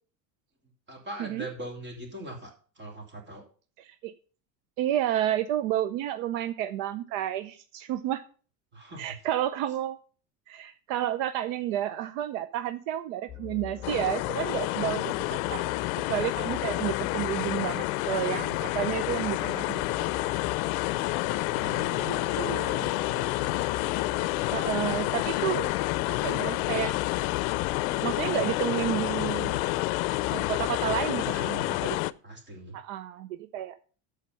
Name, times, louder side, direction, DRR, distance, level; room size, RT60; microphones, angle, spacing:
voice 1, 0.9-3.4 8.7-9.0 21.5-23.9 25.0-25.1 26.5-26.7 31.1-31.7 32.2-32.8, right 1 dB, 25° right, 1 dB, 3.0 m, -42 dB
voice 2, 3.8-4.1 4.8-8.2 9.0-10.0 10.5-15.7 16.1-20.1 22.1-22.9 24.5-25.8 26.1-27.0 28.0-29.6 30.3-32.0 32.7-33.8, right 12 dB, 70° right, 12 dB, 0.8 m, -31 dB
sound 1, 13.3-32.1, left 9 dB, 5° left, 3.4 m, -44 dB
sound 2, 13.8-32.1, left 19 dB, 80° left, 0.6 m, -29 dB
13.0 x 5.0 x 5.5 m, 0.41 s
cardioid pair, 160°, 41 cm